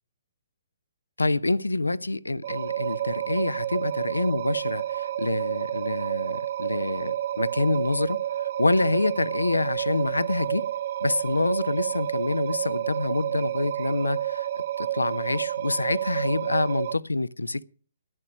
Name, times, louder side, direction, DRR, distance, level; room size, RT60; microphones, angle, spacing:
voice 1, 1.2-10.7 11.0-17.6, left 2 dB, 85° left, 0.7 m, -27 dB
sound 1, 2.4-16.9, right 12 dB, 50° right, 0.6 m, -30 dB
13.5 x 10.5 x 6.1 m
figure-of-eight pair, 130°, 0 cm